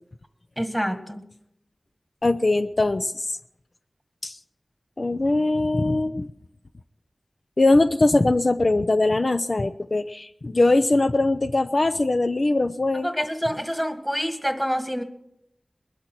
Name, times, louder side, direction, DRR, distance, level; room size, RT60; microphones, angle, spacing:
voice 1, 0.6-1.2 13.0-15.0, equal, 5° left, 8 dB, 1.7 m, -27 dB
voice 2, 2.2-3.3 4.2-4.4 5.0-6.3 7.6-13.1, left 2 dB, 55° left, 9 dB, 0.5 m, -21 dB
21.5 x 12.5 x 4.5 m, 0.78 s
wide cardioid pair, 60°, 0 cm